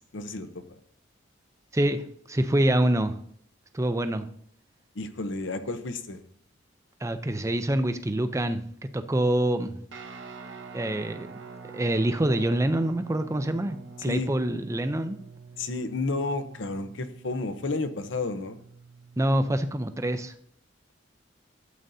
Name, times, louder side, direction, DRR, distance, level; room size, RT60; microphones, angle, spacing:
voice 1, 0.1-0.6 5.0-6.2 14.0-14.3 15.6-18.6, left 3 dB, 70° left, 10 dB, 0.8 m, -31 dB
voice 2, 1.7-2.0 2.3-3.1 3.7-4.3 7.0-9.8 10.7-11.4 11.7-15.2 19.2-20.3, right 1 dB, 15° right, 9 dB, 0.5 m, -26 dB
Guitar, 9.9-19.3, right 4 dB, 70° right, 0.9 m, -46 dB
12.5 x 7.9 x 2.7 m, 0.65 s
head